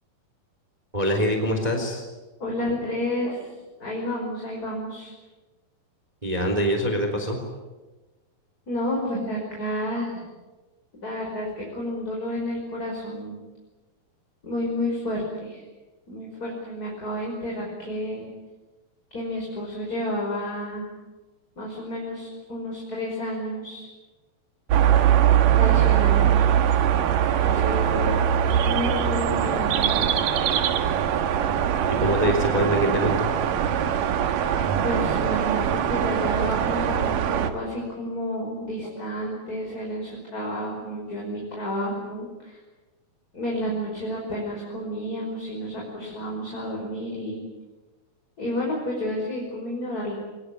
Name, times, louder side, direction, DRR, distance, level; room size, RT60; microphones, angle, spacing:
voice 1, 0.9-2.0 6.2-7.4 32.0-33.3, equal, 10° right, 4 dB, 3.3 m, -24 dB
voice 2, 2.4-3.5 3.8-5.1 8.7-10.2 11.0-13.4 14.4-15.6 16.1-18.3 19.1-20.9 21.6-23.9 25.5-26.4 27.4-28.2 28.6-30.3 34.8-42.6 43.3-47.4 48.4-50.1, left 1 dB, 25° left, -2 dB, 5.6 m, -30 dB
sound 1, 24.7-37.5, right 9 dB, 70° right, 2.9 m, -22 dB
24.5 x 20.5 x 9.5 m, 1.2 s
omnidirectional pair, 4.2 m